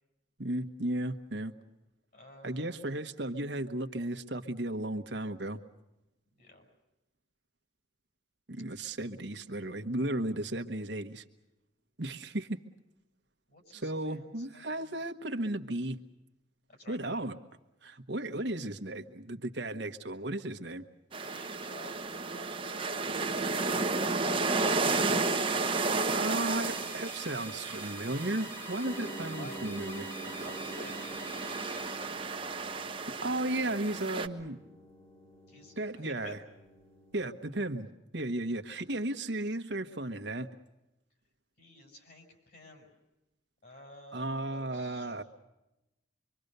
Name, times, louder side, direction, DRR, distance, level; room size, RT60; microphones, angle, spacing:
voice 1, 0.4-1.5 2.4-5.6 8.5-11.2 12.0-12.6 13.7-16.0 16.9-17.4 17.8-20.8 26.1-30.1 33.2-34.6 35.8-36.4 37.1-37.9 38.1-40.5 44.1-45.2, right 1 dB, 65° right, 7 dB, 1.2 m, -35 dB
voice 2, 2.1-2.8 6.4-6.7 13.5-15.0 16.8-17.2 21.1-25.6 29.4-29.6 30.4-31.1 33.2-33.6 35.5-36.4 41.6-42.9 43.6-45.1, left 1 dB, 55° left, 4 dB, 6.6 m, -51 dB
sound 1, 21.1-34.3, right 3 dB, 30° right, 1.1 m, -33 dB
sound 2, 24.6-32.1, left 1 dB, 10° left, 1.6 m, -47 dB
sound 3, 28.8-37.9, right 2 dB, 35° left, 2.6 m, -48 dB
25.0 x 24.5 x 6.7 m, 0.94 s
head